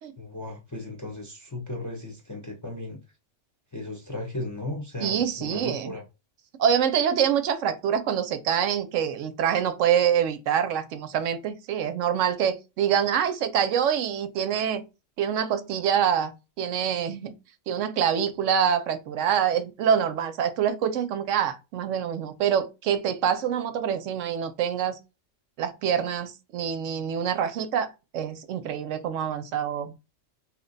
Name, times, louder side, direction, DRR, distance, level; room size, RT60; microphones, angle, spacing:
voice 1, 0.2-3.0 3.7-6.0, left 2 dB, 20° left, 0.6 m, -36 dB
voice 2, 5.0-6.0 6.6-14.8 15.2-17.3 17.7-25.0 25.6-29.9, right 8 dB, 75° right, 0.9 m, -25 dB
3.0 x 2.2 x 3.8 m
omnidirectional pair, 1.3 m